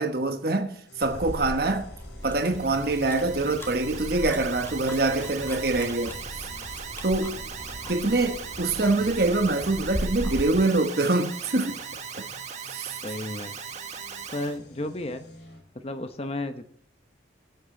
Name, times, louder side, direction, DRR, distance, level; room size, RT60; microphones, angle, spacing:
voice 1, 0.0-1.9 2.2-6.5 7.0-7.4 7.9-11.8 12.2-12.3 12.7-13.0, right 2 dB, 55° right, 1.1 m, -25 dB
sound 1, 0.9-15.6, left 1 dB, 70° left, 3.6 m, -50 dB
sound 2, 1.0-10.7, equal, 10° left, 1.9 m, -38 dB
Alarm, 2.2-14.6, right 7 dB, 40° right, 1.4 m, -39 dB
voice 2, 13.0-13.6 14.3-15.2 15.7-16.7, left 1 dB, 30° left, 0.8 m, -33 dB
23.0 x 8.5 x 3.8 m
head